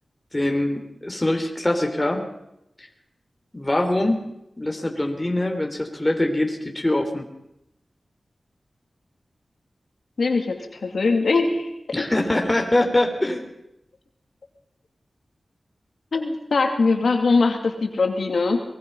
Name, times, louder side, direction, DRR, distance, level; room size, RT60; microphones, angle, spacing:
voice 1, 0.3-2.2 3.5-4.2 4.6-7.2 11.9-13.5, left 1 dB, 20° left, 3 dB, 3.4 m, -23 dB
voice 2, 10.2-11.7 12.0-12.1 16.1-18.6, left 3 dB, 75° left, 4 dB, 2.5 m, -21 dB
22.5 x 20.5 x 5.6 m, 0.84 s
wide cardioid pair, 60°, 0 cm